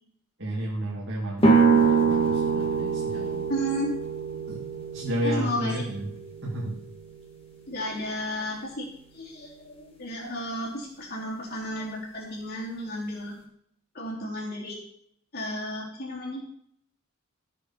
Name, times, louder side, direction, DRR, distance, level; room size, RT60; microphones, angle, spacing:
voice 1, 0.4-1.5 1.8-3.4 4.5-4.6 4.9-6.1 6.4-6.8, equal, 55° right, -3 dB, 2.3 m, -32 dB
sound 1, 1.4-7.1, right 5 dB, 25° left, 2.0 m, -25 dB
voice 2, 3.5-3.9 5.2-5.8 7.7-8.9 9.1-13.4 13.9-14.8 15.3-16.4, equal, 45° left, -3 dB, 3.7 m, -33 dB
14.0 x 6.7 x 5.7 m, 0.68 s
head